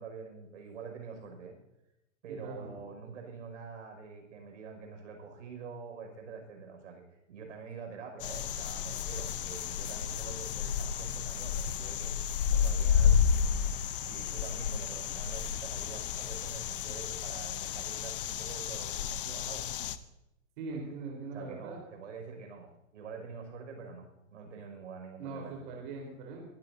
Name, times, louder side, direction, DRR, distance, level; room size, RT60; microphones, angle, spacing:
voice 1, 0.0-1.5 2.2-12.1 12.5-13.7 14.0-19.7 21.3-25.8, right 5 dB, 65° right, 4 dB, 5.9 m, -46 dB
voice 2, 2.3-2.7 20.6-21.8 25.2-26.4, right 4 dB, 40° right, 0 dB, 4.0 m, -41 dB
sound 1, 8.2-20.0, left 7 dB, 40° left, 0.8 m, -31 dB
22.5 x 14.0 x 2.7 m, 0.90 s
hypercardioid pair, 175°, 39 cm